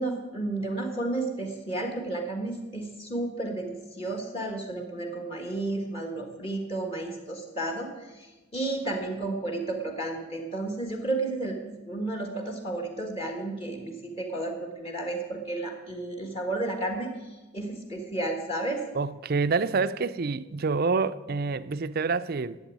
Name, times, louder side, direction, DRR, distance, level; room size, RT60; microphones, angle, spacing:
voice 1, 0.0-18.8, right 2 dB, 30° left, 1.6 m, -32 dB
voice 2, 18.9-22.6, right 4 dB, 50° right, 0.5 m, -27 dB
11.5 x 8.0 x 9.2 m
head